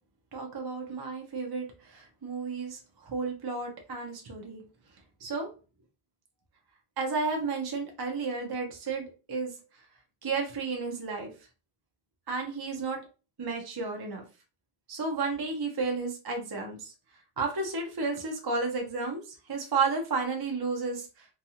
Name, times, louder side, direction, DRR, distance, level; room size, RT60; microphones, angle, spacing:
voice 1, 0.3-4.6 5.2-5.5 7.0-9.8 10.2-11.3 12.3-13.0 13.4-14.2 14.9-16.9 17.4-21.3, right 4 dB, 35° right, 2 dB, 0.4 m, -32 dB
2.6 x 2.3 x 2.7 m, 0.32 s
omnidirectional pair, 1.1 m